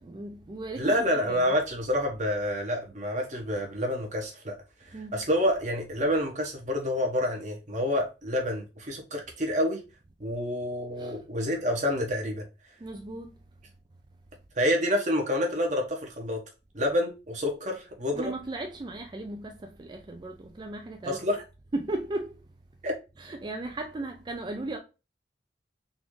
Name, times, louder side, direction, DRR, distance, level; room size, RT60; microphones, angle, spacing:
voice 1, 0.0-1.5 4.9-5.2 11.0-11.2 12.8-13.3 18.1-21.2 21.7-22.3 23.2-24.8, right 2 dB, 25° right, 0.3 m, -36 dB
voice 2, 0.8-4.5 4.8-9.8 10.2-12.4 14.6-16.4 16.7-18.3 21.0-21.4 22.8-22.9, left 1 dB, 40° right, 1.0 m, -28 dB
3.9 x 2.5 x 3.1 m
head